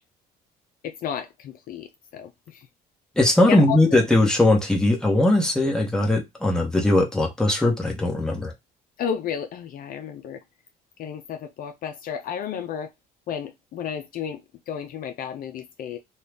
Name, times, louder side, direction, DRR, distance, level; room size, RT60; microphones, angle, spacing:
voice 1, 0.8-1.9 2.1-2.3 3.5-4.0 9.0-10.4 11.0-12.9 13.3-14.4 14.7-16.0, left 8 dB, 60° left, 0.4 m, -32 dB
voice 2, 3.2-8.5, left 1 dB, 5° left, 1.0 m, -20 dB
2.7 x 2.3 x 3.3 m
cardioid pair, 110°, 17 cm